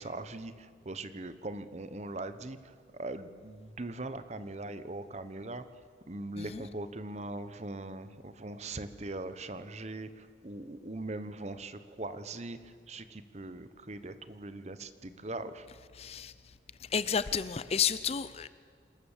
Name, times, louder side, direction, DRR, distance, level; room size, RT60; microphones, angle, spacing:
voice 1, 0.0-5.6 6.1-15.7, right 2 dB, 35° right, 0.9 m, -41 dB
voice 2, 16.0-16.3 16.9-18.5, left 7 dB, 35° left, 0.5 m, -31 dB
27.0 x 13.5 x 7.3 m
head